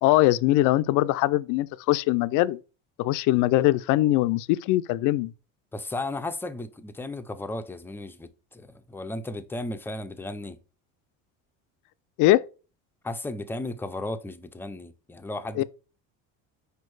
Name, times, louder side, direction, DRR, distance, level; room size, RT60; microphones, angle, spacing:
voice 1, 0.0-2.6 3.0-5.3 12.2-12.4 15.6-15.7, left 16 dB, 65° left, 0.5 m, -22 dB
voice 2, 5.7-10.6 13.0-15.6, left 2 dB, 5° left, 0.4 m, -35 dB
5.1 x 4.5 x 4.7 m
cardioid pair, 130°, 33 cm